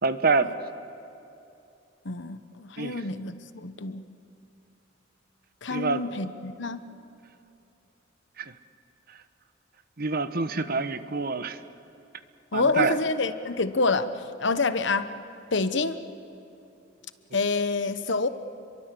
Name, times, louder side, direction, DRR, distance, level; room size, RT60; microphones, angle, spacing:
voice 1, 0.0-0.5 2.8-3.0 5.7-6.0 8.4-8.5 10.0-11.6 12.5-12.9, right 4 dB, 50° right, 11 dB, 1.0 m, -26 dB
voice 2, 2.0-4.1 5.6-6.9 12.5-15.1 15.5-16.0 17.3-18.3, left 3 dB, 65° left, 11 dB, 1.1 m, -27 dB
29.5 x 23.0 x 7.7 m, 2.7 s
head